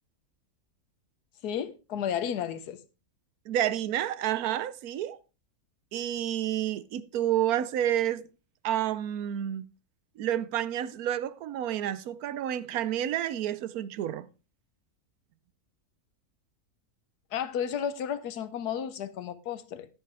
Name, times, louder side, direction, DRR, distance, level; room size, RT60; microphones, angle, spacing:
voice 1, 1.4-2.8 17.3-19.9, left 8 dB, 85° left, 1.4 m, -32 dB
voice 2, 3.5-5.2 5.9-8.2 8.6-9.7 10.2-14.3, right 11 dB, 75° right, 1.1 m, -29 dB
11.0 x 10.5 x 3.4 m
omnidirectional pair, 1.6 m